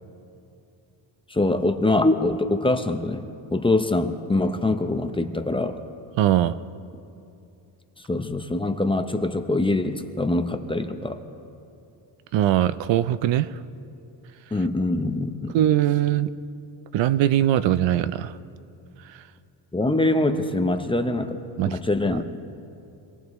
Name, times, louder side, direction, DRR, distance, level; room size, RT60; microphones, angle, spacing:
voice 1, 1.3-5.8 8.1-11.2 14.5-15.6 19.7-21.4 21.7-22.2, left 2 dB, 10° left, 6 dB, 0.6 m, -24 dB
voice 2, 6.2-6.6 12.3-13.5 15.5-16.3 16.9-18.4 21.6-21.8 22.1-22.2, right 12 dB, 65° right, 15 dB, 0.6 m, -21 dB
26.0 x 18.0 x 3.1 m, 2.6 s
cardioid pair, 130°, 49 cm